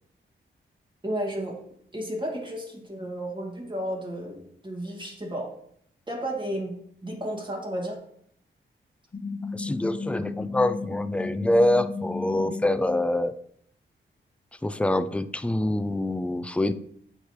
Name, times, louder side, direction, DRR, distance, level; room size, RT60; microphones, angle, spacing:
voice 1, 1.0-1.6 1.9-5.5 6.1-6.8 7.0-8.0, right 1 dB, 25° right, -1 dB, 2.0 m, -32 dB
sound 1, 9.1-13.0, left 4 dB, 35° left, 1.0 m, -34 dB
voice 2, 9.5-13.3 14.6-16.7, left 1 dB, 5° left, 12 dB, 0.4 m, -25 dB
9.5 x 3.3 x 3.1 m, 0.67 s
cardioid pair, 55°, 20 cm